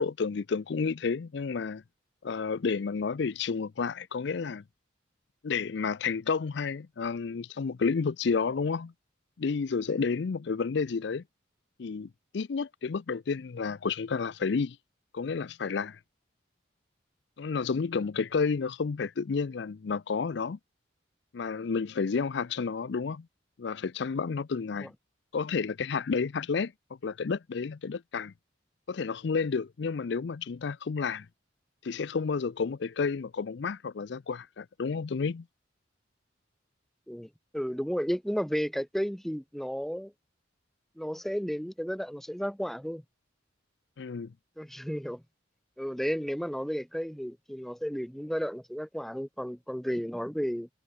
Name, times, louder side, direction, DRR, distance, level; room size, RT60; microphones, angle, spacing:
voice 1, 0.0-1.8 2.2-4.6 5.4-8.9 9.4-11.2 11.8-14.8 15.1-16.0 17.4-20.6 21.3-23.3 23.6-24.9 25.3-26.7 27.0-28.3 28.9-31.3 31.8-35.5 44.0-44.3, left 5 dB, 60° left, 0.4 m, -31 dB
voice 2, 37.1-40.1 41.0-43.0 44.6-45.2 45.8-50.7, equal, ahead, 0.7 m, -33 dB
head